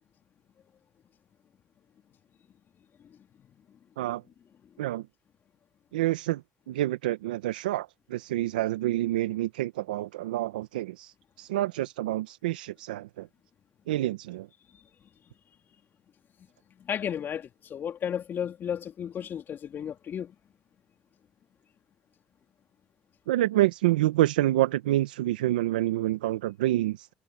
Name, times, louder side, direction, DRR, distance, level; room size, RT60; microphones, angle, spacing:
voice 1, 5.9-13.3 13.9-14.5 23.3-27.1, right 15 dB, 90° right, 0.9 m, -28 dB
voice 2, 16.8-20.3, left 8 dB, 50° left, 3.3 m, -33 dB
hypercardioid pair, 70°, 5 cm